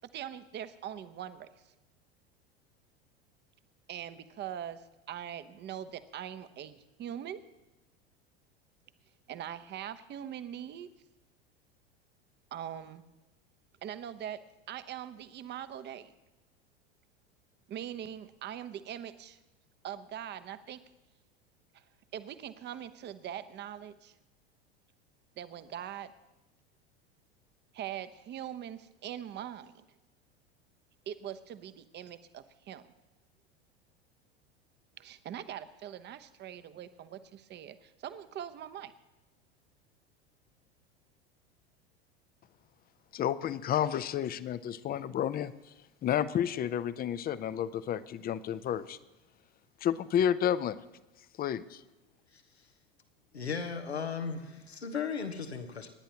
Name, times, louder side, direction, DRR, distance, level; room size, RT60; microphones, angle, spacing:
voice 1, 0.1-1.7 3.9-7.4 9.3-10.9 12.5-13.0 13.8-14.4 14.7-16.1 17.7-19.4 19.8-20.8 21.7-21.8 22.1-24.1 25.4-26.1 27.7-29.8 31.1-32.8 35.0-38.9, right 10 dB, 35° right, 11 dB, 0.9 m, -42 dB
voice 2, 43.1-45.5 46.0-49.0 49.8-50.8 51.4-51.8, left 10 dB, 30° left, 15 dB, 0.7 m, -31 dB
voice 3, 53.3-55.9, left 6 dB, 90° left, 6 dB, 1.3 m, -36 dB
28.0 x 10.0 x 2.9 m, 1.0 s
hypercardioid pair, 85°, 31 cm